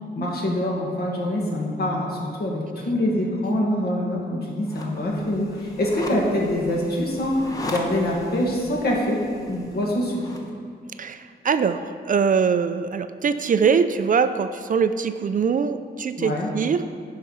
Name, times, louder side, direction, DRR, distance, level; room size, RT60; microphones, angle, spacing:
voice 1, 0.0-9.2 9.5-10.2 16.2-16.5, left 1 dB, 60° left, -2 dB, 1.8 m, -25 dB
sound 1, 4.6-10.5, left 1 dB, 20° left, 1.1 m, -38 dB
voice 2, 11.0-16.9, right 6 dB, 50° right, 10 dB, 0.4 m, -22 dB
11.5 x 4.8 x 5.5 m, 2.1 s
wide cardioid pair, 110°, 18 cm